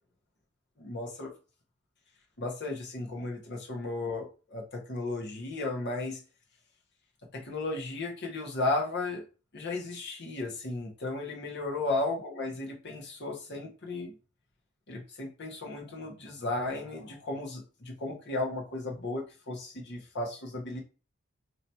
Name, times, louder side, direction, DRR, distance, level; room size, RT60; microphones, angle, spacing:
voice 1, 0.8-1.3 2.4-6.2 7.3-9.2 9.5-14.1 14.9-20.8, left 2 dB, 55° left, 1 dB, 1.1 m, -35 dB
3.0 x 2.7 x 4.3 m, 0.35 s
head